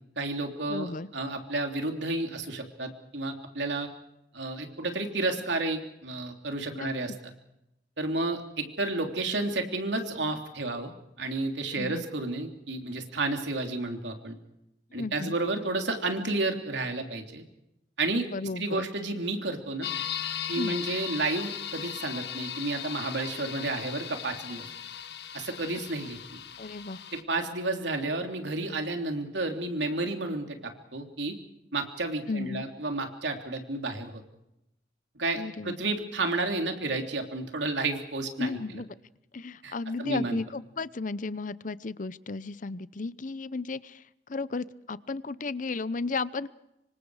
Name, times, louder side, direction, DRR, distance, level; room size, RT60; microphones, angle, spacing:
voice 1, 0.2-3.9 4.3-7.1 8.0-10.9 11.2-14.4 14.9-17.4 18.0-18.3 18.6-19.9 20.5-24.7 25.3-26.2 27.1-31.4 31.7-34.1 35.1-38.6 39.6-39.7 40.0-40.4, right 2 dB, 85° right, 4 dB, 3.2 m, -31 dB
voice 2, 0.7-1.1 6.7-6.9 11.7-12.0 14.9-15.3 18.3-18.8 20.6-20.8 26.6-27.0 32.3-32.6 35.3-35.8 38.4-38.9 39.3-46.5, left 3 dB, 45° left, 17 dB, 0.7 m, -34 dB
sound 1, 19.8-27.2, left 9 dB, 65° left, 1.4 m, -37 dB
26.5 x 24.5 x 4.9 m, 0.87 s
head